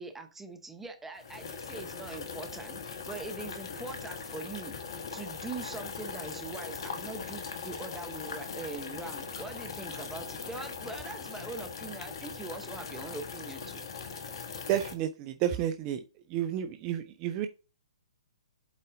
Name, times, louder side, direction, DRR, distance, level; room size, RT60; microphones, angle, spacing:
voice 1, 0.0-4.7 5.1-13.9, right 3 dB, 10° right, 6 dB, 0.8 m, -42 dB
sound 1, 1.2-14.9, left 5 dB, 55° left, 1.3 m, -40 dB
voice 2, 14.7-16.0 16.3-17.5, right 11 dB, 30° right, 8 dB, 0.5 m, -31 dB
8.2 x 4.2 x 3.8 m, 0.35 s
figure-of-eight pair, 125°, 3 cm